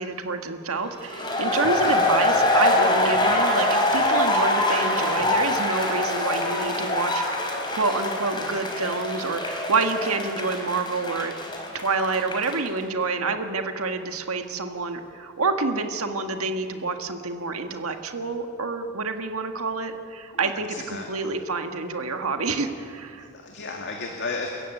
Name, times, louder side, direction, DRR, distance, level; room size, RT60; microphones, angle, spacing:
voice 1, 0.0-7.4 7.7-11.3 11.7-23.3, right 4 dB, 70° right, 6 dB, 1.7 m, -28 dB
sound 1, 1.0-12.7, left 1 dB, 20° left, 3.7 m, -24 dB
voice 2, 20.4-21.1 23.1-24.5, left 3 dB, 55° left, 1 dB, 2.3 m, -34 dB
29.5 x 14.5 x 9.3 m, 2.5 s
head